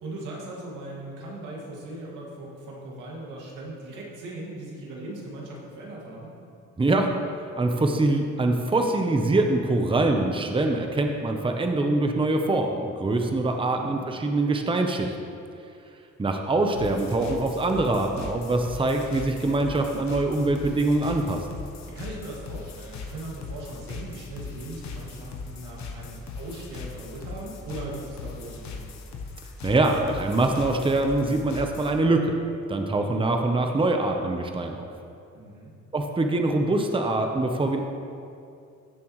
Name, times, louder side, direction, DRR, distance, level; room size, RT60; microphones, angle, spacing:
voice 1, 0.0-6.3 13.6-14.0 21.9-28.9 35.3-35.7, right 1 dB, 90° right, -3 dB, 2.2 m, -39 dB
voice 2, 6.8-7.1 7.6-15.1 16.2-21.4 29.6-32.4 32.7-34.8 35.9-37.8, right 2 dB, 15° right, 4 dB, 0.8 m, -24 dB
sound 1, 16.7-32.0, left 4 dB, 65° left, 1.2 m, -39 dB
15.5 x 7.0 x 3.2 m, 2.5 s
cardioid pair, 90°, 30 cm